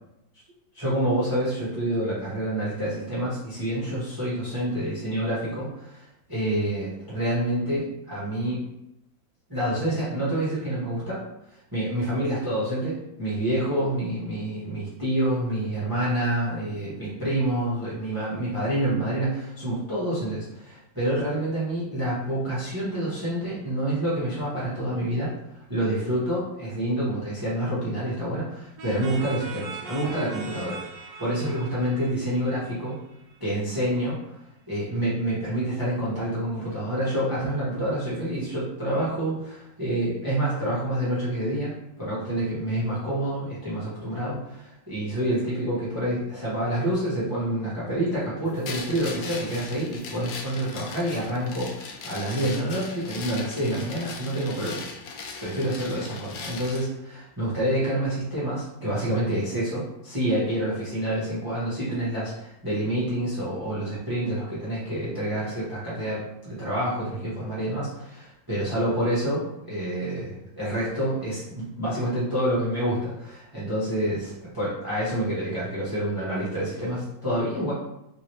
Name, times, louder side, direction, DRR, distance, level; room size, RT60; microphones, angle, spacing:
voice 1, 0.7-8.6 9.5-11.2 11.7-25.3 25.7-30.8 31.2-33.0 33.4-34.2 34.7-41.7 42.0-54.9 55.4-77.7, right 1 dB, 15° right, -9 dB, 0.8 m, -28 dB
sound 1, 28.8-33.4, right 4 dB, 70° right, 1.0 m, -40 dB
sound 2, 48.6-56.9, left 4 dB, 75° left, 1.2 m, -39 dB
3.7 x 3.0 x 3.0 m, 0.84 s
omnidirectional pair, 2.3 m